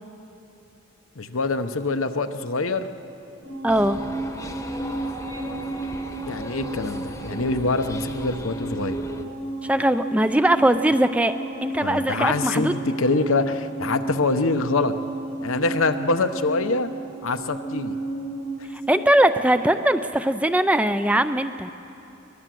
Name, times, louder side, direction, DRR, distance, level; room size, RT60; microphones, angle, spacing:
voice 1, 1.2-2.9 6.3-9.0 11.8-14.9 15.4-16.9 17.2-18.0, left 3 dB, 80° left, 8 dB, 1.0 m, -25 dB
sound 1, 3.4-18.8, right 2 dB, 65° right, 7.1 m, -33 dB
voice 2, 3.6-4.0 9.6-11.3 11.6-12.7 18.9-21.7, right 1 dB, 5° right, 10 dB, 0.4 m, -20 dB
sound 2, 3.7-9.2, left 1 dB, 15° left, 1.0 m, -37 dB
23.0 x 20.0 x 7.7 m, 2.9 s
head